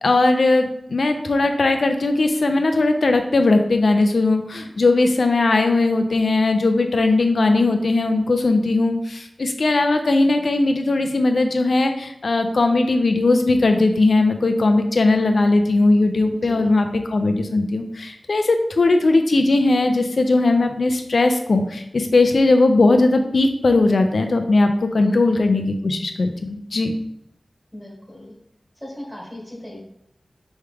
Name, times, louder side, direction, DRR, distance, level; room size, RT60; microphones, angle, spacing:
voice 1, 0.0-26.9, left 2 dB, 75° left, 6 dB, 0.4 m, -18 dB
voice 2, 16.3-16.7 24.9-25.4 27.7-28.3 28.8-29.8, left 1 dB, 5° right, -3 dB, 1.8 m, -36 dB
4.6 x 3.1 x 3.4 m, 0.76 s
wide cardioid pair, 75°, 0 cm